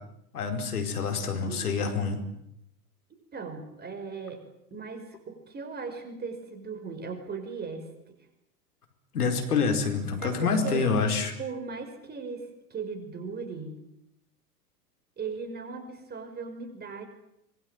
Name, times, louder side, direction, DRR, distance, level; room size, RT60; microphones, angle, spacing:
voice 1, 0.3-2.2 9.1-11.3, left 5 dB, 65° left, 6 dB, 4.7 m, -27 dB
voice 2, 3.3-4.4 4.7-8.2 10.2-10.9 11.4-13.8 15.2-17.0, right 5 dB, 20° right, 7 dB, 5.5 m, -38 dB
25.5 x 22.0 x 9.0 m, 0.80 s
figure-of-eight pair, 95°, 48 cm